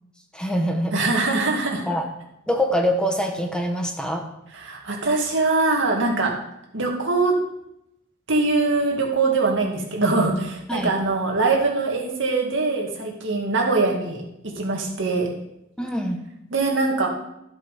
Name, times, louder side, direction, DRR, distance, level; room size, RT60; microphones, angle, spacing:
voice 1, 0.3-1.0 1.9-2.1 2.5-4.3 10.7-10.9 15.8-16.2, equal, 5° left, 2 dB, 1.0 m, -24 dB
voice 2, 0.9-1.8 4.5-6.4 6.7-7.3 8.3-15.3 16.5-17.1, right 3 dB, 60° right, 0 dB, 2.2 m, -22 dB
13.5 x 7.8 x 5.0 m, 0.83 s
head